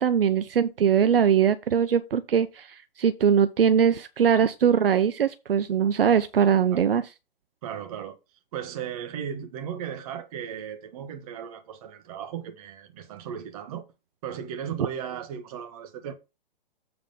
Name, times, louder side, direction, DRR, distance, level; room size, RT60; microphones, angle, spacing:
voice 1, 0.0-7.1, right 8 dB, 75° right, 0.6 m, -21 dB
voice 2, 7.6-8.2 8.5-13.9 14.2-16.1, right 8 dB, 40° right, 1.4 m, -36 dB
7.7 x 3.9 x 5.4 m
figure-of-eight pair, 125°, 29 cm